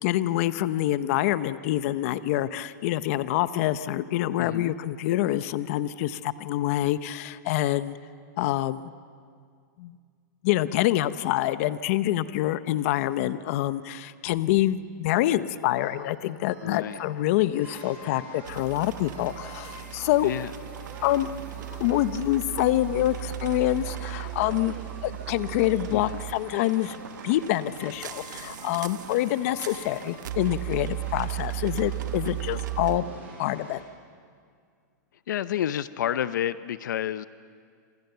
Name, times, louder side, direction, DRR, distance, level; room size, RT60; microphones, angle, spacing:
voice 1, 0.0-8.0 8.4-8.9 9.8-10.0 10.4-20.3 21.0-21.3 21.8-24.8 25.0-27.0 27.2-33.0 33.4-33.8, left 14 dB, 45° left, 14 dB, 0.9 m, -26 dB
voice 2, 4.4-4.7 16.6-17.0 20.2-20.5 25.9-26.2 35.3-37.3, left 10 dB, 75° left, 14 dB, 0.7 m, -30 dB
sound 1, 15.8-26.0, right 9 dB, 40° right, 2.3 m, -50 dB
sound 2, 17.6-33.8, right 1 dB, 15° right, 7.8 m, -46 dB
sound 3, 18.4-33.0, right 16 dB, 75° right, 1.2 m, -36 dB
28.0 x 26.5 x 6.9 m, 2.1 s
hypercardioid pair, 150°, 10 cm